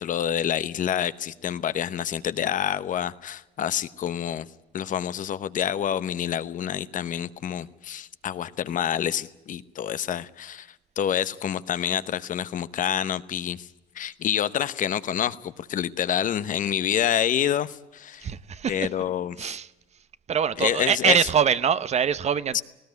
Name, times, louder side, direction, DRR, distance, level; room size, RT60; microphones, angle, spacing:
voice 1, 0.0-4.5 4.7-10.7 11.0-13.7 13.9-18.3 18.7-19.4 20.6-21.2 22.5-22.6, left 9 dB, 50° left, 0.9 m, -27 dB
voice 2, 18.2-18.9 19.4-19.7 20.3-22.6, right 7 dB, 40° right, 0.9 m, -24 dB
19.0 x 17.5 x 9.4 m
cardioid pair, 110°, 17 cm